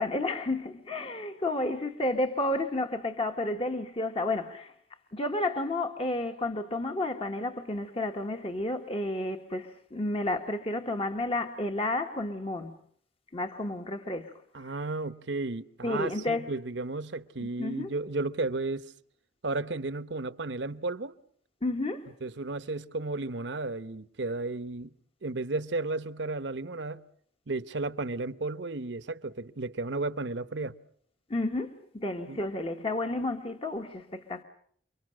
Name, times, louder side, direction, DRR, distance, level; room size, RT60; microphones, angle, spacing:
voice 1, 0.0-4.7 5.1-12.8 13.3-14.3 15.8-16.5 17.4-17.9 21.6-22.1 31.3-34.4, left 2 dB, 30° left, 1.2 m, -31 dB
voice 2, 14.5-18.9 19.4-21.1 22.2-24.9 25.2-27.0 27.5-30.8 32.3-32.4, right 3 dB, 70° right, 1.0 m, -33 dB
30.0 x 23.5 x 6.4 m
head